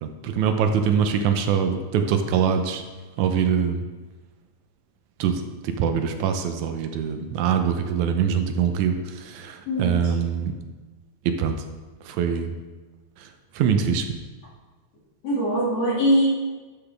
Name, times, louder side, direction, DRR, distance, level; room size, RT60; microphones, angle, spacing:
voice 1, 0.0-2.8 3.2-3.8 5.2-5.4 5.6-10.5 11.3-11.6 12.1-12.6 13.6-14.0, right 7 dB, 85° right, 6 dB, 2.2 m, -23 dB
voice 2, 9.7-10.0 15.2-16.2, equal, 60° left, -7 dB, 3.4 m, -22 dB
11.5 x 5.9 x 3.4 m, 1.3 s
omnidirectional pair, 3.3 m